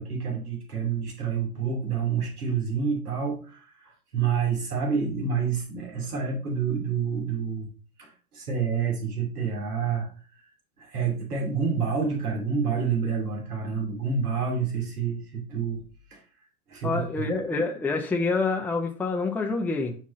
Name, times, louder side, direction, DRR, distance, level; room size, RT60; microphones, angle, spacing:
voice 1, 0.0-3.7 4.1-7.7 8.0-8.1 8.3-10.1 10.8-15.8 16.1-16.2 16.7-17.0, right 6 dB, 90° right, -1 dB, 2.6 m, -28 dB
voice 2, 16.8-20.0, left 3 dB, 5° left, 2 dB, 0.6 m, -27 dB
5.8 x 3.6 x 5.1 m, 0.39 s
hypercardioid pair, 105°, 44 cm